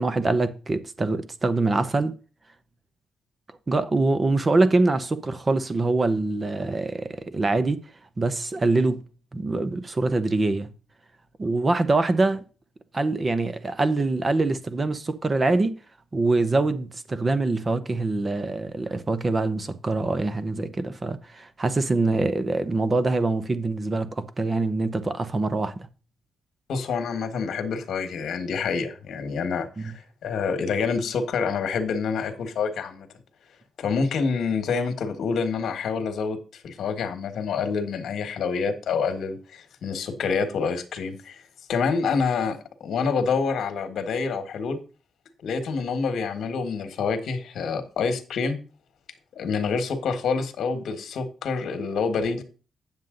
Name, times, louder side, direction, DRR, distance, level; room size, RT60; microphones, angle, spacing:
voice 1, 0.0-2.1 3.7-7.8 8.2-9.0 9.3-10.7 11.4-12.4 12.9-15.8 16.1-25.9 29.8-29.9, right 3 dB, 25° right, 0.8 m, -24 dB
voice 2, 26.7-33.1 33.8-41.4 41.7-44.8 45.4-48.6 49.3-52.4, left 5 dB, 65° left, 1.5 m, -27 dB
9.4 x 7.3 x 3.8 m
wide cardioid pair, 155°, 0 cm